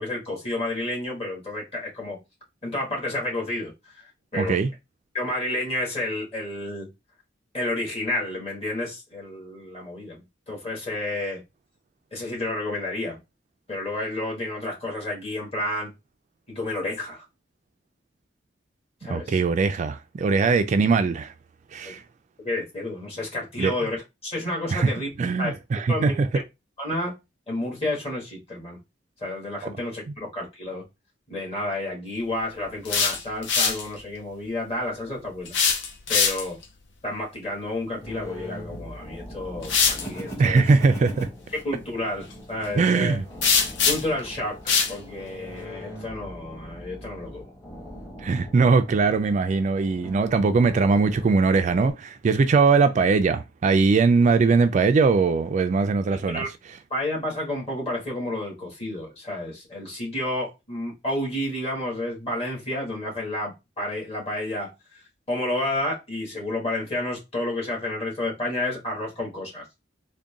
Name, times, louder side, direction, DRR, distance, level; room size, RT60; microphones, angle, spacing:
voice 1, 0.0-2.2 2.6-4.6 5.1-6.9 7.5-11.4 12.1-13.2 13.7-15.9 16.5-17.2 19.0-19.4 20.4-20.5 22.4-25.1 25.4-25.5 25.9-26.2 26.8-27.1 27.5-28.8 29.2-30.8 31.3-35.5 36.1-36.6 37.0-40.6 41.5-43.2 43.8-44.6 44.9-47.5 56.3-56.5 56.9-65.0 65.3-69.6, left 1 dB, 35° left, 1.8 m, -30 dB
voice 2, 4.3-4.7 19.1-21.3 21.7-22.0 23.6-23.7 24.7-24.9 25.2-26.3 40.4-41.3 42.8-43.2 48.2-56.5, right 4 dB, 40° right, 0.3 m, -21 dB
sound 1, 32.7-33.9 35.5-36.6 38.7-38.8 39.6-40.1 43.4-44.2 44.7-45.0, left 5 dB, 80° left, 0.7 m, -22 dB
sound 2, 38.0-51.9, equal, 15° left, 1.2 m, -41 dB
3.8 x 2.2 x 3.5 m
head